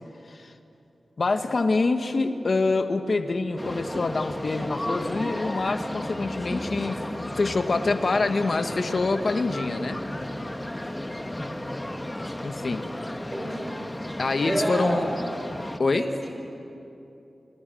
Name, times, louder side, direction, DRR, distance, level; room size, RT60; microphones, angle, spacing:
voice 1, 1.2-10.0 12.4-12.8 14.2-15.1 15.8-16.1, left 3 dB, 55° left, 7 dB, 1.6 m, -26 dB
sound 1, 3.6-15.8, left 1 dB, 15° left, 1.2 m, -33 dB
voice 2, 13.3-13.8 14.5-15.0 15.9-16.3, right 1 dB, 25° right, 2 dB, 5.5 m, -29 dB
29.0 x 19.5 x 7.9 m, 2.8 s
wide cardioid pair, 90°, 0 cm